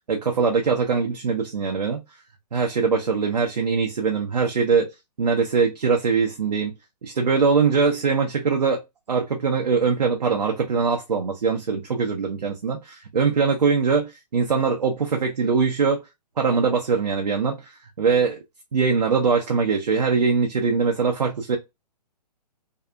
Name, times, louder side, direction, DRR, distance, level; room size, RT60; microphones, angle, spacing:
voice 1, 0.1-2.0 2.5-4.9 5.2-6.7 7.0-8.8 9.1-16.0 16.4-18.4 18.7-21.6, right 5 dB, 75° right, 0.6 m, -22 dB
2.7 x 2.4 x 2.2 m
figure-of-eight pair, 130°, 21 cm